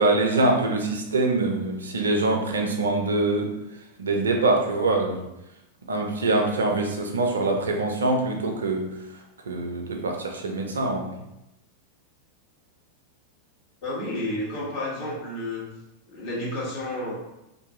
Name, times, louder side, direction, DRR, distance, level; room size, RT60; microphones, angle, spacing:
voice 1, 0.0-3.5 4.0-5.2 5.9-8.9 9.5-11.0, right 2 dB, 70° right, 3 dB, 0.4 m, -24 dB
voice 2, 13.8-15.6 16.1-17.1, left 1 dB, 45° left, -6 dB, 1.3 m, -31 dB
2.6 x 2.4 x 2.8 m, 0.89 s
figure-of-eight pair, 90°, 0 cm